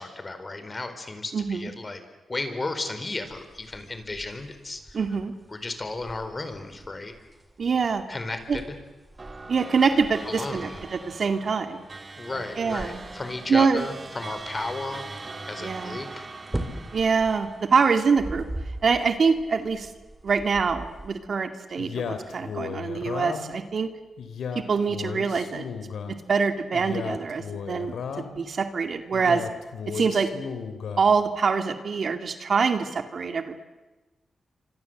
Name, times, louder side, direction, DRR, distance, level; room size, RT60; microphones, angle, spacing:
voice 1, 0.0-2.0 2.3-5.0 5.5-7.1 8.1-8.6 10.3-10.8 12.2-15.0 15.5-16.3, left 2 dB, 30° left, 9 dB, 4.2 m, -34 dB
sound 1, 3.2-21.2, right 1 dB, 15° right, 4.2 m, -42 dB
voice 2, 4.9-5.3 7.6-8.1 8.5-8.6 9.5-11.8 12.6-13.0 13.5-13.9 15.6-16.0 16.9-18.5 18.8-19.9 20.2-23.9 24.5-25.7 26.1-28.0 28.4-29.5 29.9-30.3 31.0-33.6, right 5 dB, 60° right, 8 dB, 2.2 m, -24 dB
sound 2, 9.2-18.8, right 3 dB, 35° right, 2.7 m, -41 dB
Male speech man speaking, 21.8-23.6 24.2-26.2 26.7-28.4 29.1-31.1, left 6 dB, 85° left, 2.9 m, -34 dB
28.5 x 25.5 x 7.9 m, 1.1 s
cardioid pair, 85°, 0 cm